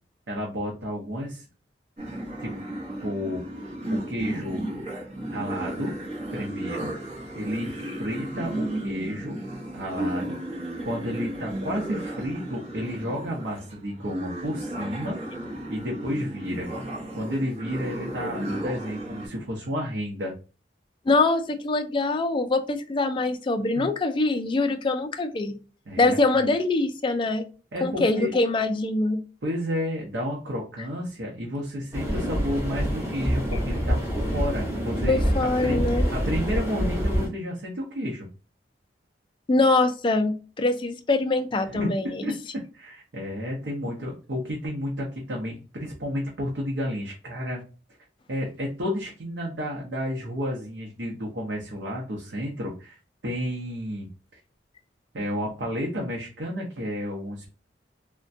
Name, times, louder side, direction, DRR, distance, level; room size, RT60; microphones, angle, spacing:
voice 1, 0.3-1.4 2.4-2.5 3.0-3.5 3.9-4.6 5.3-5.9 6.3-6.9 7.3-9.4 9.7-15.2 15.7-16.7 17.1-20.3 23.8-23.9 25.9-26.2 27.7-28.3 29.4-34.0 34.3-35.2 35.6-35.8 36.1-38.3 41.6-41.9 42.2-42.3 42.7-47.6 48.3-53.0 53.2-54.1 55.1-57.5, equal, 70° right, -2 dB, 0.7 m, -31 dB
sound 1, 2.0-19.3, right 1 dB, 40° right, 0.9 m, -34 dB
voice 2, 21.1-25.6 26.0-27.4 27.8-29.2 35.1-36.1 39.5-42.3, left 2 dB, 30° left, 7 dB, 0.3 m, -23 dB
sound 2, 31.9-37.3, equal, 15° right, 1.1 m, -26 dB
3.3 x 2.2 x 2.6 m, 0.35 s
head